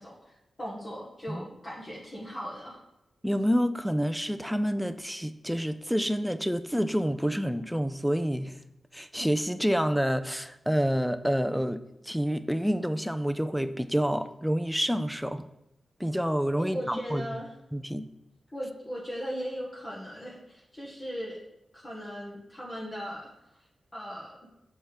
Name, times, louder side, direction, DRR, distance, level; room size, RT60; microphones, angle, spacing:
voice 1, 0.0-2.8 16.6-17.5 18.5-21.4 21.7-23.3 23.9-24.4, equal, 35° left, -4 dB, 1.4 m, -38 dB
voice 2, 3.2-8.6 8.9-15.5 16.0-17.3 17.7-18.0, equal, ahead, 11 dB, 0.4 m, -28 dB
6.8 x 4.4 x 4.8 m, 0.86 s
wide cardioid pair, 100°, 0 cm